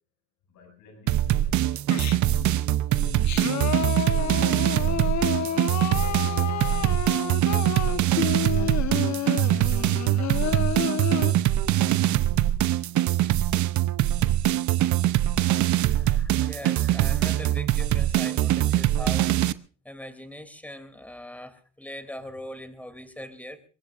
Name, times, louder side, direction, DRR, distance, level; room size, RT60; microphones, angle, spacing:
voice 1, 0.5-4.5 5.2-7.3 7.7-10.7, left 4 dB, 80° left, 3 dB, 7.3 m, -53 dB
sound 1, 1.1-19.5, right 13 dB, 70° right, 0.7 m, -23 dB
Singing, 1.9-2.5 3.0-11.3, left 9 dB, 65° left, 1.3 m, -30 dB
voice 2, 15.6-19.3 19.8-23.6, left 1 dB, 5° left, 9 dB, 2.9 m, -41 dB
23.0 x 21.5 x 2.6 m, 0.37 s
cardioid pair, 90°, 30 cm